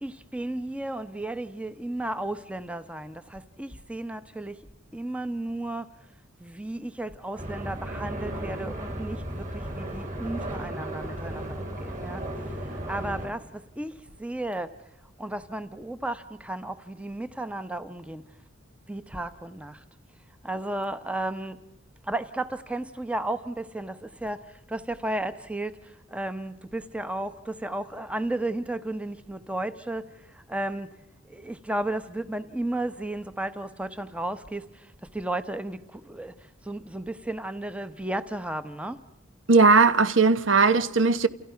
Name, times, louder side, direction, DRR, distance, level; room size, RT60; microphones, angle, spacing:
voice 1, 0.0-4.6 4.9-5.9 6.4-14.8 15.2-18.2 18.9-19.8 20.4-21.6 22.0-30.9 31.3-39.0, right 1 dB, 5° right, 1.0 m, -34 dB
sound 1, 7.4-13.3, right 1 dB, 40° right, 5.4 m, -35 dB
voice 2, 39.5-41.3, right 4 dB, 65° right, 1.2 m, -18 dB
30.0 x 29.0 x 5.8 m
head